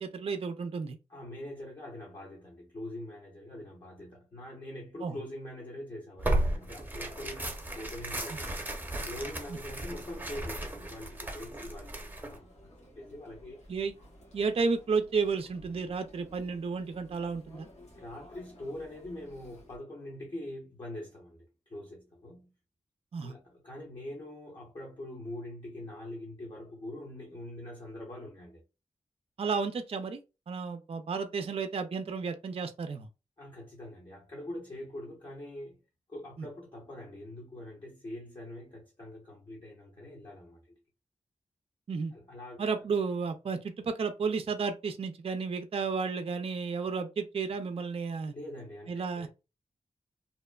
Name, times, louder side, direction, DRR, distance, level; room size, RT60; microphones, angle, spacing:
voice 1, 0.0-1.0 5.0-5.1 13.7-13.9 14.3-17.7 23.1-23.3 29.4-30.2 30.5-33.1 41.9-42.1 42.6-48.3 48.9-49.3, right 5 dB, 50° right, 0.4 m, -32 dB
voice 2, 1.1-8.7 9.1-13.6 17.9-22.5 23.2-28.6 33.4-35.8 36.1-40.7 42.1-42.8 48.3-49.3, left 1 dB, 35° left, 0.9 m, -44 dB
Tearing, 6.2-12.4, right 1 dB, 15° right, 0.8 m, -35 dB
Chatter, 6.5-19.8, equal, 60° left, 1.0 m, -55 dB
2.7 x 2.1 x 2.3 m
cardioid pair, 65°, 13 cm